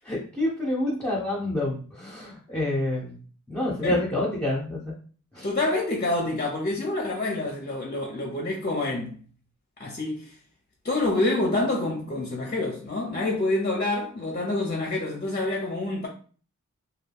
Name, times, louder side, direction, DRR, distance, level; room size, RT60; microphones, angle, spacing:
voice 1, 0.0-3.2 3.5-4.9 5.3-5.5, left 1 dB, 5° left, 1.0 m, -28 dB
voice 2, 5.4-9.2 9.8-10.3 10.8-16.1, left 2 dB, 30° left, 0.6 m, -27 dB
2.3 x 2.1 x 3.4 m
wide cardioid pair, 55°, 31 cm